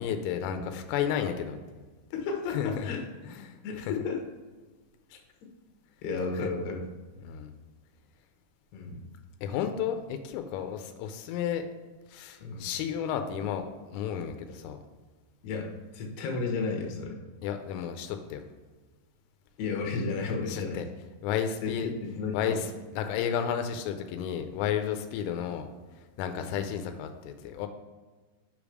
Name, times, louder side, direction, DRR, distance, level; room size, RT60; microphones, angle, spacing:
voice 1, 0.0-1.6 2.5-2.9 3.3-3.6 7.2-7.5 9.4-11.7 12.1-14.8 17.4-18.4 20.5-20.8 21.2-21.9 22.3-22.7 22.9-25.6 26.2-27.7, left 8 dB, 90° left, 6 dB, 3.2 m, -32 dB
voice 2, 2.1-3.0 3.6-4.2 5.1-5.2 6.0-6.8 8.7-9.0 12.4-12.7 15.4-17.2 19.6-20.8 21.6-22.6 26.4-26.6, left 4 dB, 70° left, 2 dB, 2.8 m, -33 dB
6.9 x 5.2 x 4.8 m, 1.3 s
omnidirectional pair, 5.7 m